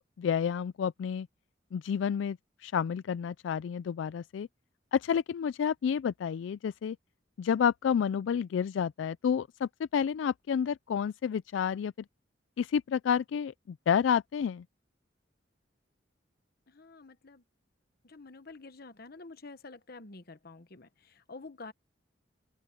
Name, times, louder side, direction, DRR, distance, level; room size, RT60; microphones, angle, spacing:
voice 1, 0.2-1.3 1.7-4.5 4.9-7.0 7.4-11.9 12.6-14.6, left 7 dB, 80° left, 0.3 m, -30 dB
voice 2, 16.7-17.4 18.0-21.7, left 3 dB, 55° left, 1.1 m, -48 dB
open air
head